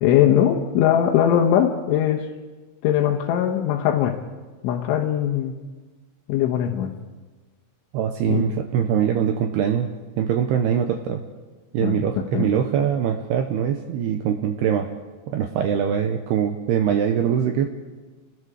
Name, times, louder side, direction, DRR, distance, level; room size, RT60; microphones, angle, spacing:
voice 1, 0.0-2.3 2.8-4.2 4.6-5.6 6.3-6.9 8.3-8.4 11.8-12.0 12.3-12.5, left 10 dB, 75° left, 1 dB, 3.4 m, -20 dB
voice 2, 7.9-11.2 11.7-14.9 15.3-17.7, right 8 dB, 80° right, 5 dB, 2.4 m, -23 dB
28.0 x 19.5 x 4.9 m, 1.3 s
omnidirectional pair, 5.8 m